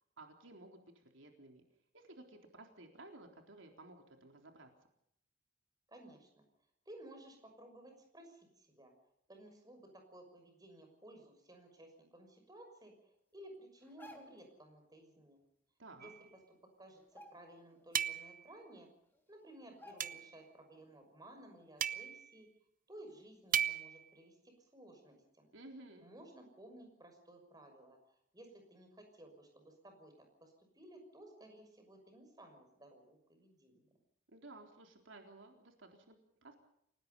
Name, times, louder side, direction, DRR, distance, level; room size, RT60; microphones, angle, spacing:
voice 1, 0.2-1.6 1.9-4.7 15.8-16.1 25.5-26.1 34.3-36.6, right 2 dB, 80° right, 3 dB, 3.8 m, -55 dB
voice 2, 5.9-6.4 6.9-8.9 9.3-15.4 16.0-16.1 16.8-18.9 19.3-22.5 22.9-25.5 26.0-33.8, right 1 dB, 20° right, 4 dB, 6.3 m, -56 dB
sound 1, 13.8-14.5 16.0-16.1 16.4-16.6 17.0-17.9 18.3-18.4 19.1-19.2 19.8-20.4 20.8-20.9, left 1 dB, 10° left, 3.4 m, -57 dB
sound 2, 16.0-16.2 18.0-18.5 20.0-20.4 21.8-22.3 23.5-24.1, right 9 dB, 45° right, 0.8 m, -36 dB
29.5 x 18.5 x 5.6 m, 0.74 s
head